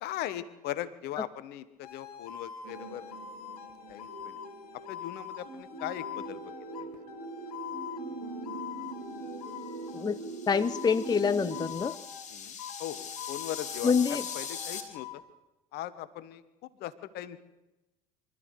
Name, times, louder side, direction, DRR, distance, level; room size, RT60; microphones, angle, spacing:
voice 1, 0.0-3.0 3.9-4.4 4.9-6.4 6.8-6.9 12.3-15.2 15.7-16.4 16.8-17.4, left 13 dB, 55° left, 15 dB, 1.3 m, -39 dB
sound 1, 1.8-10.1 10.6-12.3 12.6-15.2, left 10 dB, 75° left, 1.4 m, -44 dB
sound 2, 2.6-11.7, right 3 dB, 85° right, 7.9 m, -42 dB
sound 3, 9.7-14.8, left 6 dB, 40° left, 3.8 m, -42 dB
voice 2, 10.5-12.0 13.8-14.2, left 5 dB, 20° left, 14 dB, 0.7 m, -26 dB
24.5 x 13.5 x 8.2 m, 1.0 s
figure-of-eight pair, 60°, 19 cm